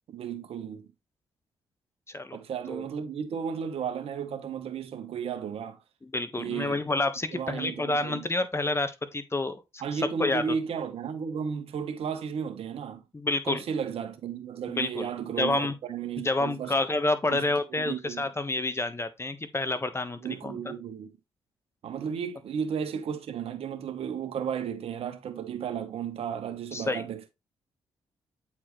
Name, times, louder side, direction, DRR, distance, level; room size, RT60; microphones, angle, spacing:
voice 1, 0.1-0.9 2.3-5.8 6.4-6.8 7.3-8.3 9.8-13.0 13.5-16.7 17.3-17.4 17.7-18.3 20.2-21.1 21.8-27.3, right 7 dB, 70° right, 1.2 m, -34 dB
voice 2, 2.1-2.4 2.7-2.9 6.0-9.6 10.2-10.4 13.1-13.6 14.7-15.1 15.4-15.7 16.2-20.7 26.7-27.0, left 2 dB, 25° left, 1.4 m, -29 dB
8.3 x 4.5 x 3.2 m
supercardioid pair, 50°, 11 cm